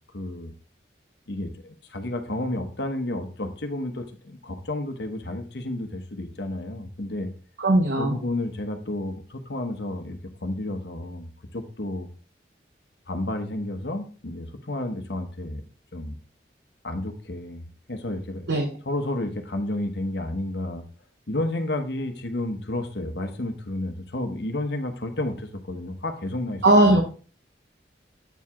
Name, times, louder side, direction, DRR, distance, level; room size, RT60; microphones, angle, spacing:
voice 1, 0.1-0.5 1.3-7.3 8.0-12.1 13.1-15.6 15.9-16.2 16.8-18.5 18.9-20.8 21.3-27.0, left 1 dB, 70° left, 6 dB, 1.1 m, -31 dB
voice 2, 7.6-8.2 18.5-18.7 26.6-27.0, right 1 dB, 85° right, 3 dB, 1.0 m, -18 dB
8.1 x 4.7 x 3.6 m, 0.37 s
head